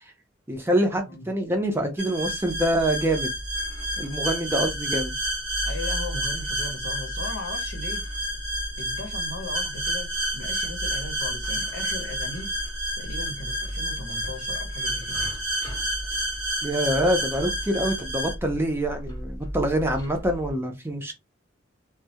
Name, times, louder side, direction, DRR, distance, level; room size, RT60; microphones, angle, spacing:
voice 1, 0.5-3.3 4.0-5.1 16.6-21.1, right 1 dB, 10° right, 0.5 m, -25 dB
sound 1, 2.0-18.3, right 1 dB, 80° right, 1.0 m, -30 dB
sound 2, 2.2-20.5, equal, 20° left, 0.8 m, -37 dB
voice 2, 5.7-8.1 8.8-12.6 13.0-15.2, left 3 dB, 85° left, 0.7 m, -38 dB
2.2 x 2.1 x 2.7 m
head